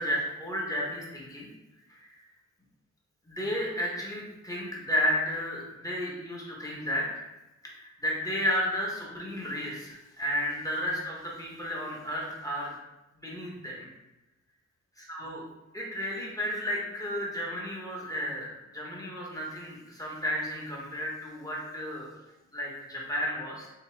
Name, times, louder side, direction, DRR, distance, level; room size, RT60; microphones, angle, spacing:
voice 1, 0.0-1.5 1.9-2.2 3.3-7.3 7.6-12.7 13.2-13.9 15.0-15.4 15.7-22.1 22.5-23.7, equal, 10° left, -4 dB, 1.0 m, -33 dB
3.8 x 2.8 x 3.2 m, 1.0 s
wide cardioid pair, 100°, 30 cm